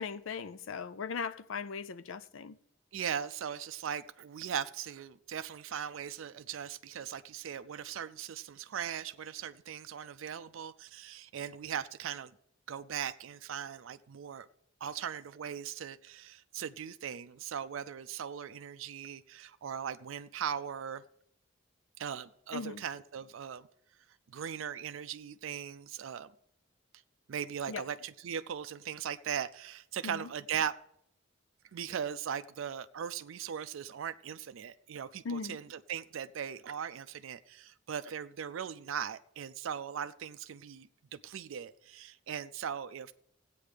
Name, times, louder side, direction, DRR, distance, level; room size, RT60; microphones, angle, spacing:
voice 1, 0.0-2.6 22.5-22.8 27.7-27.8 30.0-30.3 35.2-35.6, left 5 dB, 75° left, 0.5 m, -38 dB
voice 2, 2.9-12.3 12.7-14.5 14.8-21.0 22.0-23.7 24.3-26.3 27.3-30.8 31.7-43.1, right 8 dB, 75° right, 0.4 m, -39 dB
17.0 x 8.4 x 3.3 m
head